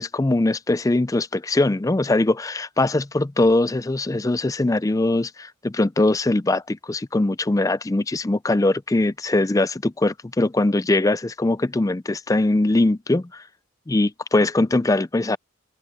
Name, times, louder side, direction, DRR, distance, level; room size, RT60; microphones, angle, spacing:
voice 1, 0.0-13.4 13.9-15.4, left 2 dB, 15° left, 0.4 m, -21 dB
head